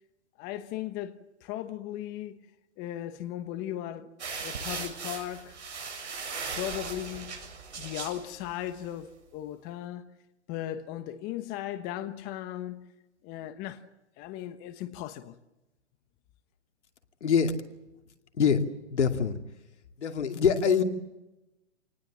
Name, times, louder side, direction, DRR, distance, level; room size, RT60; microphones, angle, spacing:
voice 1, 0.4-2.5 2.8-4.1 4.4-5.6 6.5-7.5 7.8-10.1 10.5-12.9 13.2-13.8 14.2-15.4, left 12 dB, 25° left, 1.2 m, -37 dB
sound 1, 4.2-8.9, right 5 dB, 75° right, 7.5 m, -38 dB
voice 2, 17.2-17.6 18.4-18.6 18.9-19.4 20.0-20.8, left 7 dB, 75° left, 2.7 m, -24 dB
28.0 x 19.5 x 7.5 m
hypercardioid pair, 140°, 34 cm